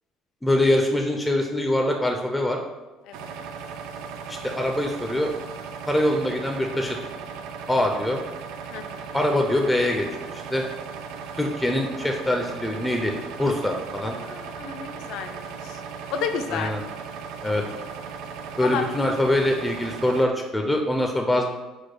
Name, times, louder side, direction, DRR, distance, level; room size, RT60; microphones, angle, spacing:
voice 1, 0.4-2.6 4.3-5.3 5.8-7.0 7.7-8.2 9.1-10.6 11.3-13.1 13.4-14.2 16.5-16.8 17.4-17.6 18.6-21.5, left 1 dB, 5° left, 2 dB, 0.3 m, -23 dB
voice 2, 3.0-3.4 8.7-9.1 14.2-15.8 16.1-16.7 18.6-18.9, left 6 dB, 75° left, 6 dB, 0.4 m, -32 dB
sound 1, 3.1-20.3, right 6 dB, 85° right, 0.3 m, -37 dB
4.6 x 2.1 x 4.5 m, 1.2 s
cardioid pair, 135°, 0 cm